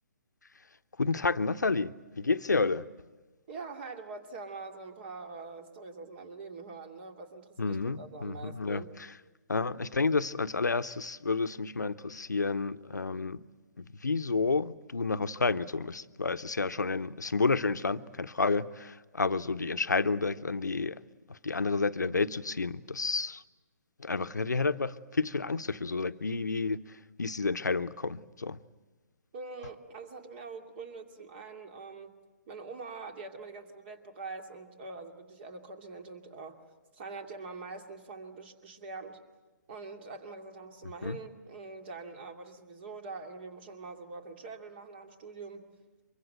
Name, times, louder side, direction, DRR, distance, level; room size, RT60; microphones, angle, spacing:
voice 1, 1.0-2.8 7.6-8.8 9.5-13.4 14.0-21.0 21.3-23.4 24.0-26.8 27.2-28.6 41.0-41.2, left 4 dB, 85° left, 0.9 m, -30 dB
voice 2, 3.5-8.9 29.3-32.1 32.5-36.6 36.9-39.2 39.7-45.6, right 4 dB, 35° right, 2.5 m, -44 dB
24.0 x 23.5 x 7.8 m
figure-of-eight pair, 140°, 9 cm